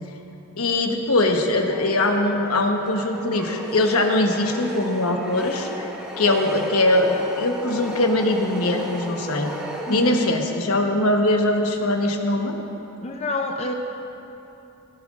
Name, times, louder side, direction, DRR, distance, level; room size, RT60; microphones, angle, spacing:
voice 1, 0.6-5.7 6.2-9.5 9.9-12.6, left 2 dB, 75° left, 2 dB, 1.1 m, -21 dB
sound 1, 1.6-10.7, equal, 5° right, 1.0 m, -34 dB
voice 2, 9.9-10.2 13.0-13.7, left 2 dB, 30° left, 3 dB, 0.5 m, -27 dB
15.5 x 15.5 x 2.5 m, 3.0 s
head